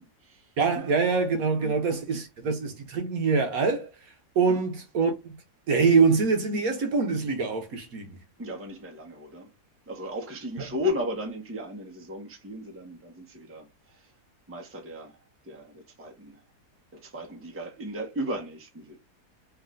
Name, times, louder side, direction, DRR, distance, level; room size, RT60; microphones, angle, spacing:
voice 1, 0.0-0.4 1.6-1.7 4.5-4.6 8.4-9.5 9.9-13.7 14.5-15.1 15.5-16.4 17.0-19.0, left 1 dB, 10° right, 0.8 m, -35 dB
voice 2, 0.6-3.9 4.4-5.3 5.7-8.2 10.6-10.7, right 4 dB, 65° right, 1.2 m, -24 dB
3.5 x 3.2 x 3.6 m
omnidirectional pair, 1.7 m